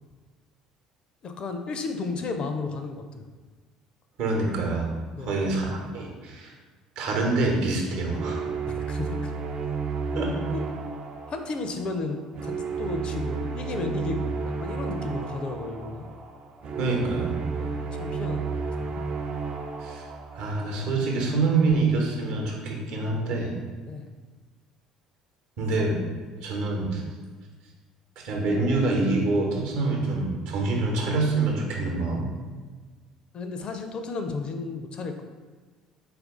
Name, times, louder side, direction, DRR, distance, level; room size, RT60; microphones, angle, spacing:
voice 1, 1.2-3.2 5.2-5.3 8.7-9.4 10.1-10.6 11.3-12.5 12.8-16.1 17.6-18.6 19.0-19.1 23.9-24.1 33.3-35.2, left 3 dB, 40° left, 6 dB, 0.4 m, -33 dB
voice 2, 4.2-4.9 5.2-6.5 7.0-8.4 10.1-10.4 16.8-17.4 19.8-20.1 20.3-23.6 25.6-26.0 26.4-27.0 28.2-32.3, right 3 dB, 60° right, 0 dB, 0.9 m, -26 dB
sound 1, 8.1-21.2, right 5 dB, 45° right, 0.4 m, -32 dB
4.5 x 2.5 x 3.6 m, 1.4 s
figure-of-eight pair, 55°, 2 cm